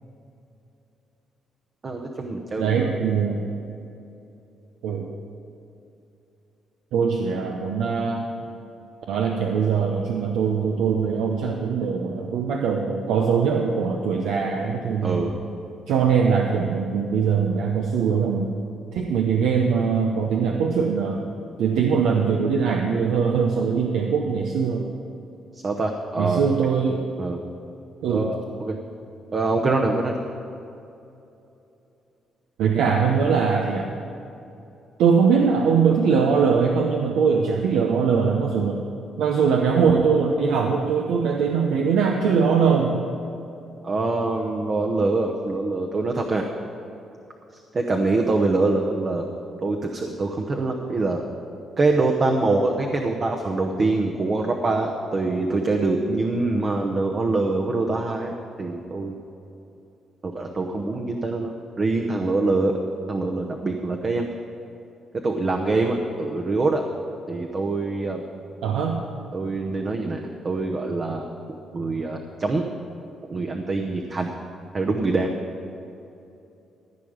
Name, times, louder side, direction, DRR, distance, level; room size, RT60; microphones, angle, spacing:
voice 1, 1.8-2.9 15.0-15.3 25.5-26.4 27.2-27.4 28.1-28.8 29.3-30.2 43.8-46.5 47.5-49.3 49.6-51.2 51.8-59.2 60.2-62.7 63.1-64.3 65.2-66.8 67.3-68.2 69.3-71.3 71.7-72.6 73.2-74.3 74.7-75.3, right 3 dB, 40° right, 2 dB, 0.9 m, -24 dB
voice 2, 2.6-3.4 4.8-5.1 6.9-8.2 9.1-15.3 15.9-18.5 18.9-21.2 21.6-24.9 26.2-27.0 28.0-28.3 32.6-33.9 35.0-38.8 39.2-43.0 68.6-69.0, right 6 dB, 85° right, 1 dB, 0.8 m, -21 dB
14.5 x 5.0 x 8.7 m, 2.8 s
cardioid pair, 90°, 0 cm